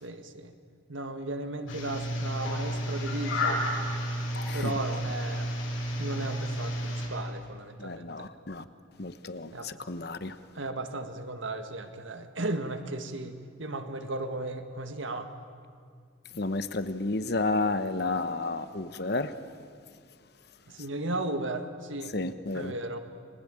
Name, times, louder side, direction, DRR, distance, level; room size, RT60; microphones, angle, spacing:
voice 1, 0.0-0.5 0.9-3.7 4.5-5.5 6.0-8.3 9.5-9.7 10.6-15.3 20.7-22.1 22.5-23.0, right 2 dB, 75° right, 8 dB, 1.8 m, -35 dB
sound 1, 1.7-7.1, equal, 80° left, 7.8 m, -31 dB
voice 2, 7.8-8.6 9.0-10.4 16.3-19.3 22.1-22.7, left 2 dB, 50° left, 11 dB, 1.1 m, -31 dB
30.0 x 21.0 x 8.9 m, 2.2 s
head